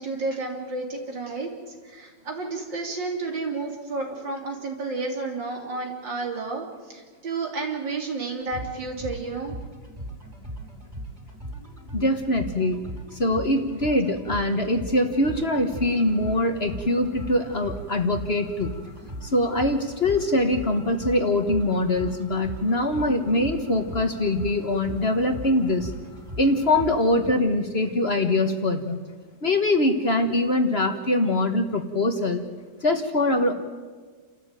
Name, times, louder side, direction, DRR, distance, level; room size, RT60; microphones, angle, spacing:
voice 1, 0.0-9.5, right 3 dB, 80° right, 1 dB, 4.1 m, -31 dB
sound 1, 8.4-27.3, right 1 dB, 35° right, 4.4 m, -38 dB
voice 2, 11.9-12.8 13.1-18.7 19.2-25.9 26.4-29.0 29.4-32.5 32.8-33.5, left 1 dB, 35° left, 6 dB, 1.5 m, -23 dB
29.5 x 13.5 x 9.0 m, 1.5 s
omnidirectional pair, 1.9 m